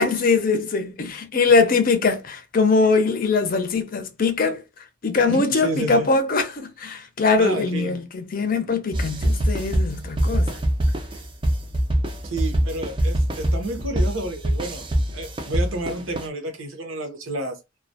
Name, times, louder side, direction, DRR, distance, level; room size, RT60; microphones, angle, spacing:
voice 1, 0.0-4.6 5.0-10.6, left 4 dB, 45° left, 0.5 m, -21 dB
voice 2, 5.3-6.1 7.3-8.0 12.2-14.8 15.1-17.6, right 2 dB, 90° right, 0.7 m, -30 dB
sound 1, 8.9-16.3, right 1 dB, 25° right, 0.4 m, -24 dB
2.2 x 2.1 x 2.7 m
head